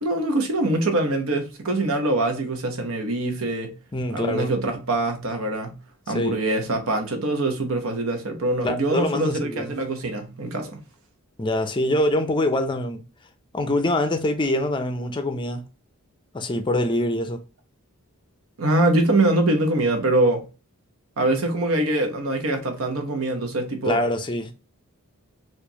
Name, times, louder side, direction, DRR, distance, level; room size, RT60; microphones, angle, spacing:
voice 1, 0.0-3.7 4.1-5.7 6.1-10.7 18.6-20.4 21.2-24.0, right 2 dB, 65° right, 0.9 m, -23 dB
voice 2, 3.9-4.5 6.1-6.4 8.6-9.7 11.4-13.0 13.5-15.6 16.3-17.4 23.9-24.5, left 1 dB, 20° left, 0.5 m, -24 dB
4.4 x 2.5 x 2.8 m
head